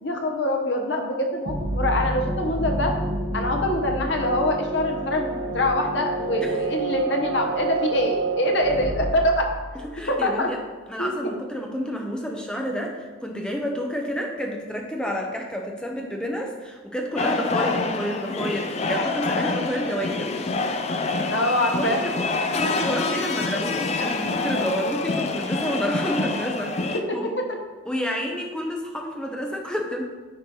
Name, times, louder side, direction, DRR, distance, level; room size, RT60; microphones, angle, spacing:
voice 1, 0.0-2.9 3.3-9.5 10.1-10.5 11.0-11.1 21.3-22.1 26.9-27.2, left 1 dB, 65° left, 3 dB, 1.0 m, -24 dB
sound 1, 1.4-10.1, right 3 dB, 65° right, 1.7 m, -28 dB
voice 2, 9.9-10.6 10.9-20.3 21.8-22.1 22.6-27.3 27.9-30.0, equal, 5° left, 0 dB, 0.9 m, -29 dB
sound 2, 17.2-27.0, left 3 dB, 35° left, 0.5 m, -26 dB
9.7 x 4.6 x 3.9 m, 1.3 s
head